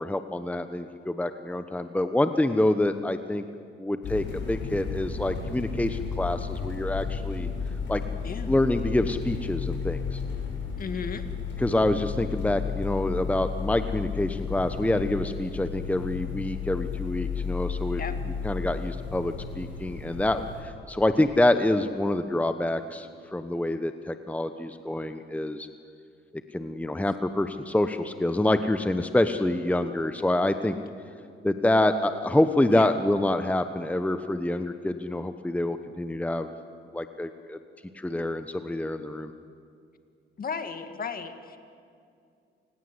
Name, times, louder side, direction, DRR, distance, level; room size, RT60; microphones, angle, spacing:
voice 1, 0.0-3.5 3.8-7.5 7.9-8.0 8.5-10.2 11.6-18.0 18.4-25.7 26.5-30.8 31.4-36.5 36.9-37.6 37.9-39.3, left 1 dB, 5° left, 9 dB, 1.0 m, -26 dB
sound 1, 4.0-20.6, left 6 dB, 70° left, 6.5 m, -33 dB
voice 2, 8.2-8.5 10.8-11.3 18.0-18.2 32.7-33.0 40.4-41.6, left 6 dB, 45° left, 8 dB, 2.1 m, -34 dB
28.5 x 19.5 x 8.1 m, 2.4 s
cardioid pair, 90°, 20 cm